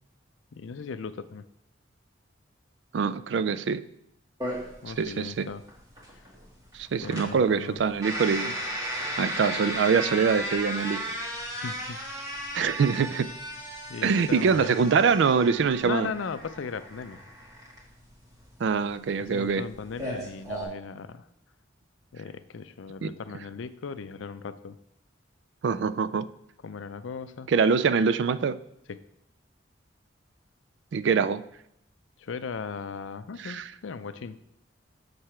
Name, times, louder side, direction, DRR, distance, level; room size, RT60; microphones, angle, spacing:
voice 1, 0.5-1.4 4.8-5.6 7.0-7.8 11.5-12.6 13.9-14.7 15.8-17.2 19.2-21.3 22.1-24.8 26.6-27.5 28.9-29.0 32.2-34.4, left 5 dB, 85° left, 13 dB, 0.5 m, -37 dB
voice 2, 2.9-3.8 4.9-5.5 6.7-8.6 9.2-11.1 12.5-13.3 14.0-16.1 18.6-19.6 23.0-23.1 25.6-26.3 27.5-28.6 30.9-31.4 33.4-33.7, right 5 dB, 65° right, 15 dB, 0.3 m, -24 dB
sound 1, 4.4-20.6, equal, 20° right, 1.7 m, -36 dB
6.9 x 6.6 x 4.4 m, 0.78 s
head